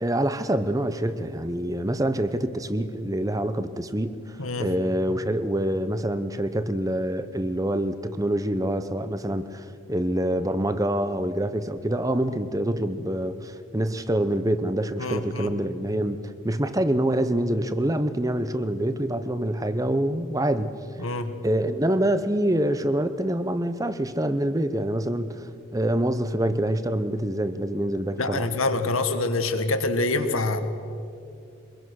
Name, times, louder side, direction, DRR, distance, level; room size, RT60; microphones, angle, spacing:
voice 1, 0.0-20.7 21.4-28.5, right 1 dB, 15° right, 11 dB, 0.8 m, -26 dB
voice 2, 15.0-15.5 21.0-21.3 28.2-30.6, left 2 dB, 75° left, 7 dB, 1.7 m, -26 dB
24.0 x 22.0 x 6.4 m, 2.5 s
head